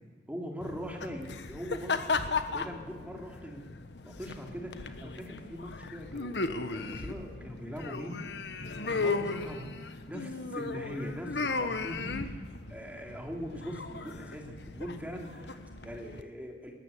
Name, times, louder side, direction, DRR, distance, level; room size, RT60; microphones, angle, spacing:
voice 1, 0.3-3.7 4.0-6.4 6.7-8.2 8.8-16.7, equal, 10° right, 1 dB, 2.8 m, -41 dB
sound 1, 0.6-16.2, left 3 dB, 75° left, 1.3 m, -36 dB
20.5 x 18.0 x 8.4 m, 1.5 s
head